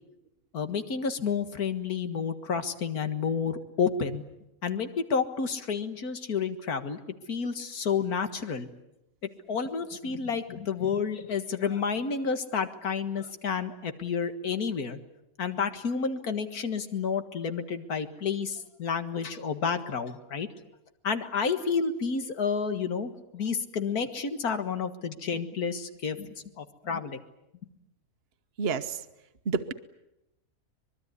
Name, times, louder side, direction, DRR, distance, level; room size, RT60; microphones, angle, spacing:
voice 1, 0.5-4.2 4.6-7.0 7.3-8.7 9.5-15.0 15.4-20.5 21.0-27.2, left 6 dB, 90° left, 9 dB, 2.2 m, -30 dB
voice 2, 28.6-29.1 29.4-29.7, right 5 dB, 45° right, 8 dB, 1.3 m, -29 dB
24.5 x 22.0 x 9.7 m, 0.86 s
omnidirectional pair, 1.6 m